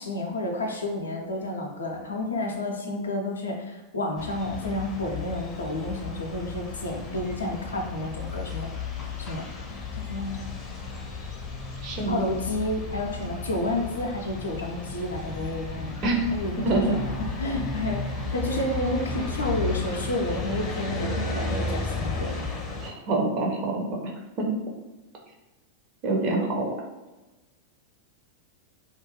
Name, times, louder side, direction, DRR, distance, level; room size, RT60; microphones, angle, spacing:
voice 1, 0.0-8.7 9.2-10.5 12.1-16.0 16.3-18.0 18.3-22.3, left 1 dB, 70° left, 1 dB, 0.5 m, -30 dB
sound 1, 4.2-22.9, left 3 dB, 25° left, 0.5 m, -33 dB
voice 2, 11.8-12.2 16.0-16.3 16.6-16.9 22.8-24.1 24.4-24.5 26.0-26.7, right 2 dB, 40° right, 0 dB, 0.6 m, -25 dB
2.4 x 2.2 x 3.0 m, 1.1 s
figure-of-eight pair, 90°, 0 cm